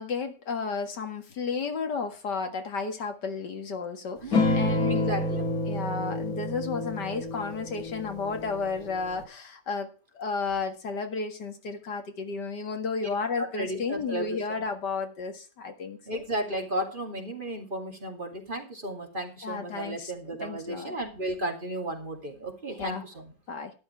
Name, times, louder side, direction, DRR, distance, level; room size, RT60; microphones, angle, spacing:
voice 1, 0.0-5.1 5.7-16.2 19.4-21.0 22.8-23.0 23.5-23.7, left 4 dB, 70° left, 6 dB, 2.4 m, -33 dB
voice 2, 4.2-5.5 13.4-14.7 16.1-23.3, right 1 dB, 25° right, 3 dB, 2.8 m, -34 dB
sound 1, 4.3-9.2, left 2 dB, 55° left, 2.9 m, -29 dB
12.5 x 11.5 x 4.5 m, 0.34 s
omnidirectional pair, 1.9 m